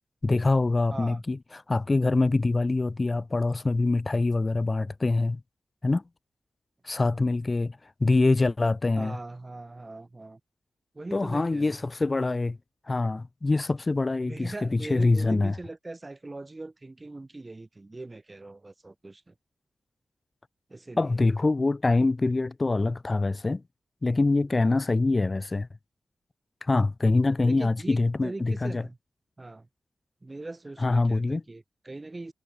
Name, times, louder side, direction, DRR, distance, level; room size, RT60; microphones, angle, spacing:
voice 1, 0.2-1.4 1.7-5.4 5.8-6.0 6.8-9.2 11.1-12.6 12.9-15.5 21.0-23.6 24.0-25.7 26.6-28.8 30.8-31.4, left 3 dB, 40° left, 2.1 m, -24 dB
voice 2, 0.9-1.2 8.9-10.4 10.9-11.8 14.2-19.3 20.7-21.2 24.5-24.8 27.4-29.0 29.4-29.7 30.2-32.3, right 2 dB, 35° right, 3.2 m, -41 dB
cardioid pair, 45°, 0 cm